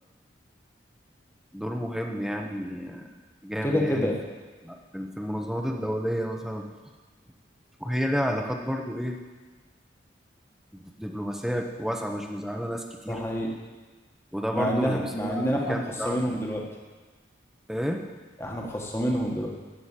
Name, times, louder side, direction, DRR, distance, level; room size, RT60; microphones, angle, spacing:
voice 1, 1.5-3.1 3.4-4.1 4.6-6.7 7.8-9.1 10.7-13.2 14.3-16.5 17.7-18.0, equal, ahead, 3 dB, 0.9 m, -31 dB
voice 2, 3.6-4.2 13.1-13.5 14.5-16.6 18.4-19.5, equal, 15° left, -1 dB, 1.5 m, -27 dB
13.5 x 6.0 x 8.4 m, 1.4 s
head